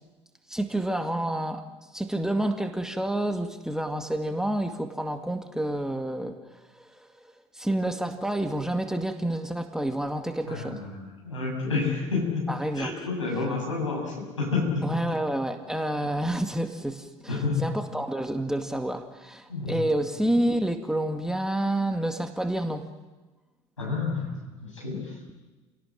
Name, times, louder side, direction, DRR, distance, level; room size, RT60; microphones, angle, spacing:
voice 1, 0.5-1.7 1.9-6.4 6.8-6.9 7.5-10.8 12.5-13.1 14.8-22.9, right 1 dB, 5° right, 6 dB, 2.1 m, -29 dB
voice 2, 10.5-12.5 12.8-14.9 17.3-17.6 19.5-19.8 23.8-25.1, left 4 dB, 85° left, -2 dB, 7.3 m, -29 dB
29.5 x 17.5 x 7.6 m, 1.2 s
figure-of-eight pair, 60°, 16 cm